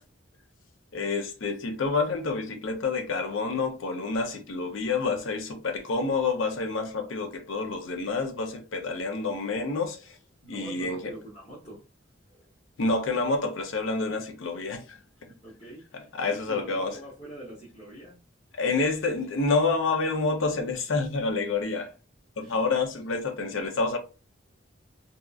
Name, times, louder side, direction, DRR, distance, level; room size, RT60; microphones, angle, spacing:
voice 1, 0.9-10.2 10.5-11.1 12.8-15.0 16.2-16.9 18.6-21.9 22.4-24.0, left 3 dB, 85° left, 0.6 m, -28 dB
voice 2, 10.4-11.8 12.3-12.5 14.1-14.2 15.2-16.1 16.5-18.2 22.4-22.7, right 1 dB, 35° left, 0.9 m, -45 dB
2.7 x 2.3 x 2.3 m
head